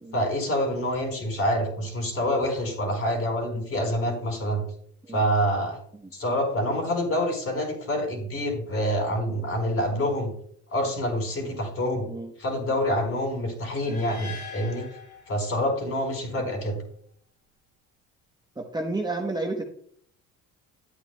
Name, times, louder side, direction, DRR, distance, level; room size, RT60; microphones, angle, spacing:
voice 1, 0.1-4.6 5.1-5.8 6.1-10.3 10.7-12.1 12.4-14.9 15.3-16.8, equal, 45° left, 1 dB, 4.0 m, -27 dB
sound 1, 13.8-16.0, left 5 dB, 85° left, 3.4 m, -42 dB
voice 2, 18.6-19.6, right 2 dB, 15° right, 1 dB, 1.0 m, -31 dB
11.5 x 8.7 x 2.2 m, 0.62 s
cardioid pair, 90°, 32 cm